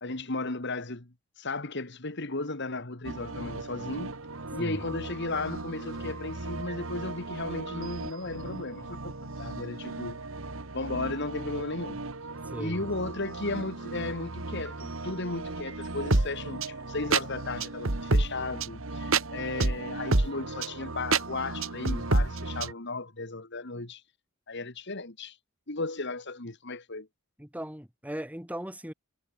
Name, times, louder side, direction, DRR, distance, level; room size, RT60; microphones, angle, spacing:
voice 1, 0.0-4.2 4.5-10.2 10.7-12.0 12.6-24.0 24.5-25.4 25.7-27.1, left 2 dB, 55° left, 2.4 m, -35 dB
sound 1, 3.0-22.7, right 3 dB, 75° right, 1.9 m, -32 dB
voice 2, 12.4-12.9 27.4-28.9, equal, 5° right, 4.7 m, -37 dB
head